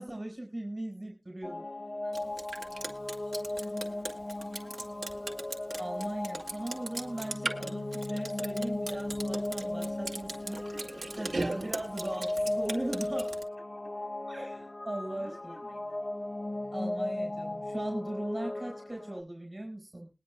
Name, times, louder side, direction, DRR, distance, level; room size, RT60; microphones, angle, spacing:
voice 1, 0.0-1.7 5.8-10.6 11.2-13.3 14.3-15.5 16.7-20.1, right 1 dB, 40° right, 1 dB, 4.6 m, -38 dB
sound 1, 1.4-19.2, left 1 dB, 40° left, 0.7 m, -36 dB
voice 2, 2.0-5.3 10.7-11.2 12.7-13.1 13.8-14.0 15.1-16.0, right 1 dB, 5° right, -1 dB, 6.5 m, -56 dB
Drip, 2.1-13.4, right 2 dB, 75° right, 2.2 m, -39 dB
22.0 x 10.5 x 2.3 m, 0.28 s
wide cardioid pair, 60°, 0 cm